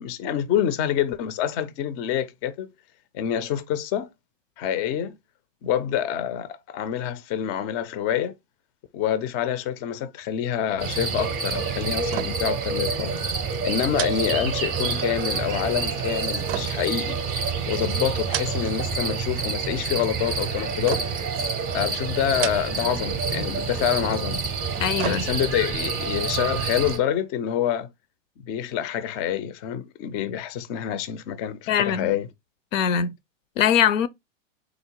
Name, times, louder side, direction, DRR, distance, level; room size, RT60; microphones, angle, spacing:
voice 1, 0.0-2.7 3.1-4.1 4.6-5.2 5.6-8.3 8.9-13.1 13.6-17.2 17.7-21.0 21.7-24.4 25.0-27.9 28.5-32.3, left 10 dB, 30° left, 0.4 m, -27 dB
sound 1, 10.8-27.0, right 5 dB, 25° right, 0.6 m, -28 dB
sound 2, 12.1-12.6 12.9-13.0 13.9-15.0 16.5-17.6 18.1-18.9 19.2-19.8 20.9-21.4 22.2-23.0 23.3-23.4 24.5-25.7 26.1-26.2, right 13 dB, 75° right, 0.5 m, -34 dB
voice 2, 24.8-25.3 31.7-32.1 32.7-33.1 33.6-34.1, left 8 dB, 80° left, 0.6 m, -22 dB
3.8 x 2.0 x 4.3 m
hypercardioid pair, 130°, 39 cm